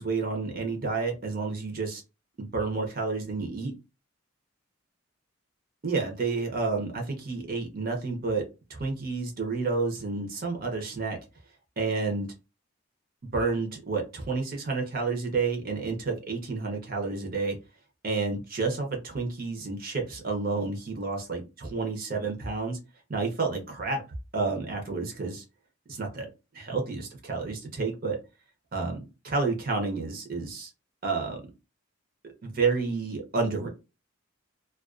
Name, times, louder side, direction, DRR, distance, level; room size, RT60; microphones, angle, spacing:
voice 1, 0.0-2.0 2.4-3.7 5.8-8.4 8.7-11.2 11.8-12.3 13.3-17.6 18.0-22.8 23.1-24.0 24.3-25.4 25.9-26.3 26.5-28.2 28.7-30.7 31.0-31.4 32.4-33.7, right 4 dB, 45° right, 2 dB, 0.6 m, -30 dB
2.3 x 2.2 x 2.4 m, 0.28 s
head